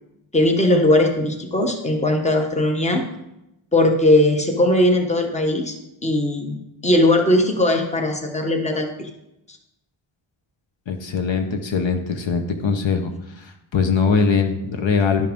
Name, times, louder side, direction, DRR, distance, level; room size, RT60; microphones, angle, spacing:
voice 1, 0.3-3.0 3.7-5.8 6.0-6.6 6.8-9.1, left 1 dB, 15° left, 4 dB, 1.1 m, -19 dB
voice 2, 10.9-15.3, left 5 dB, 60° left, 6 dB, 1.0 m, -22 dB
11.5 x 5.6 x 5.3 m, 0.89 s
wide cardioid pair, 130°, 50 cm